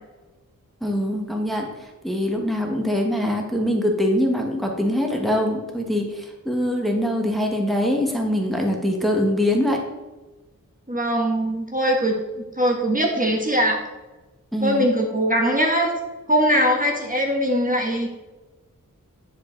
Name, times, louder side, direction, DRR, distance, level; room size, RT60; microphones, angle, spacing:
voice 1, 0.8-9.8 14.5-14.9, left 1 dB, ahead, 1 dB, 1.3 m, -23 dB
voice 2, 10.9-12.2 12.6-13.8 14.6-15.9 16.3-18.1, equal, 25° right, 1 dB, 1.2 m, -21 dB
9.6 x 4.8 x 3.8 m, 1.1 s
wide cardioid pair, 45°, 33 cm